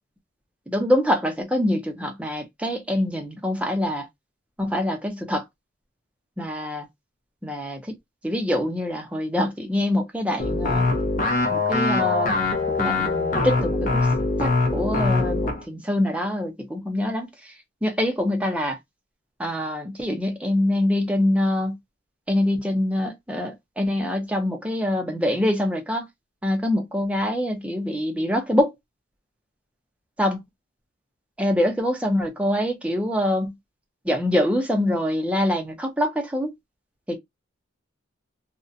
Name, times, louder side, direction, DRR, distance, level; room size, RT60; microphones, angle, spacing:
voice 1, 0.7-4.1 4.6-5.5 6.4-6.9 7.4-8.0 8.2-10.9 11.5-12.3 12.7-14.1 14.4-17.5 17.8-18.8 19.4-21.8 22.3-26.1 26.4-28.7 30.2-30.4 31.4-33.6 34.0-36.5 37.1-37.2, left 1 dB, 5° right, 0.5 m, -25 dB
sound 1, 10.4-15.6, left 3 dB, 40° left, 0.6 m, -23 dB
2.5 x 2.1 x 2.5 m
head